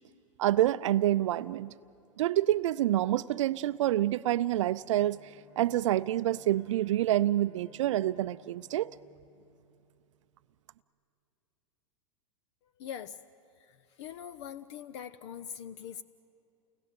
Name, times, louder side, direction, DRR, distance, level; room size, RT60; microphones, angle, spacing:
voice 1, 0.4-1.7 2.2-8.9, right 13 dB, 60° right, 14 dB, 0.5 m, -27 dB
Bowed string instrument, 4.7-10.3, left 4 dB, 20° left, 5.3 m, -61 dB
voice 2, 12.8-13.2 13.6-16.0, left 9 dB, 55° left, 14 dB, 0.8 m, -42 dB
29.5 x 20.0 x 6.9 m, 2.7 s
hypercardioid pair, 100°, 18 cm